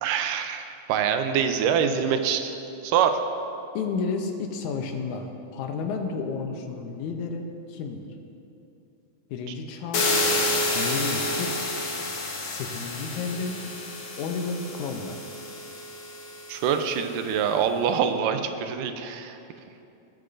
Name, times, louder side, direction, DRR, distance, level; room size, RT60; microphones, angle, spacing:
voice 1, 0.0-2.5 2.8-3.2 16.5-19.4, right 7 dB, 85° right, 7 dB, 2.2 m, -25 dB
voice 2, 3.7-8.1 9.3-10.3 10.7-11.7 12.4-13.6 14.2-15.2, left 4 dB, 80° left, 4 dB, 2.1 m, -32 dB
sound 1, 9.9-16.8, left 2 dB, 55° left, 1.4 m, -29 dB
18.5 x 9.8 x 2.6 m, 2.8 s
omnidirectional pair, 3.7 m